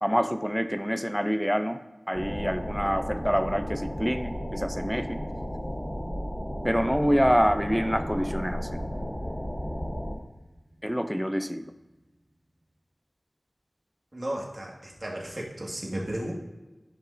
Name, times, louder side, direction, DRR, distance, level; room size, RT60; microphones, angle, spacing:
voice 1, 0.0-1.8 2.1-5.2 6.6-8.7 10.8-11.6, equal, ahead, 9 dB, 0.5 m, -26 dB
sound 1, 2.1-10.2, equal, 15° left, 1.0 m, -34 dB
sound 2, 7.6-11.9, right 1 dB, 65° right, 2.5 m, -45 dB
voice 2, 14.1-16.3, right 1 dB, 40° right, -2 dB, 1.8 m, -34 dB
11.5 x 5.2 x 2.6 m, 1.1 s
wide cardioid pair, 60°, 0 cm